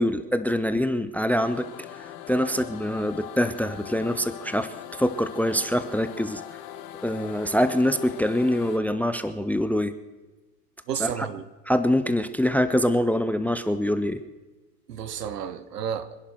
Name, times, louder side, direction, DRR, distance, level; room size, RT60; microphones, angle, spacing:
voice 1, 0.0-1.7 2.3-4.7 5.0-6.4 7.0-9.9 11.0-11.1 11.7-14.2, equal, 5° left, 13 dB, 0.6 m, -24 dB
sound 1, 1.4-8.8, left 11 dB, 45° left, 1.6 m, -41 dB
voice 2, 10.9-11.5 14.9-16.2, right 8 dB, 75° right, 13 dB, 1.3 m, -31 dB
25.5 x 11.0 x 4.6 m, 1.2 s
figure-of-eight pair, 80°, 48 cm